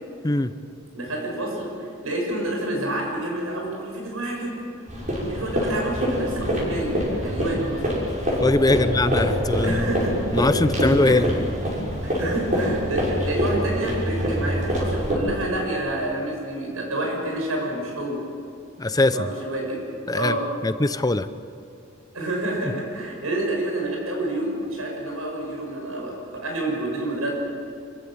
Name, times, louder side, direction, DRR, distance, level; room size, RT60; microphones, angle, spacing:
voice 1, 0.9-4.5 5.3-7.8 8.7-8.9 9.6-10.1 11.0-11.2 12.0-18.2 19.0-19.8 20.1-20.4 22.1-27.3, right 1 dB, 85° right, 0 dB, 7.2 m, -28 dB
sound 1, 4.9-15.2, equal, 35° right, 6.4 m, -25 dB
voice 2, 8.4-9.9 10.3-11.3 18.8-19.3 20.1-20.3 20.6-21.3, left 2 dB, 20° left, 12 dB, 0.6 m, -21 dB
26.5 x 15.5 x 7.9 m, 2.4 s
head